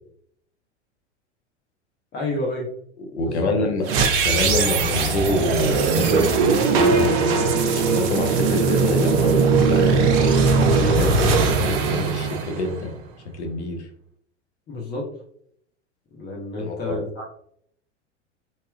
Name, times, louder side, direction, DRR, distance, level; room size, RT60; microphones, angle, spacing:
voice 1, 2.1-2.6 3.2-3.5 14.7-15.1 16.1-17.3, left 2 dB, 30° left, -2 dB, 0.9 m, -29 dB
voice 2, 3.1-3.9 4.2-10.1 10.7-12.9 13.3-13.9 16.6-17.0, left 2 dB, 70° left, 4 dB, 0.8 m, -26 dB
sound 1, 3.8-13.1, right 4 dB, 55° right, 0.6 m, -20 dB
3.1 x 2.8 x 2.3 m, 0.66 s
figure-of-eight pair, 85°, 35 cm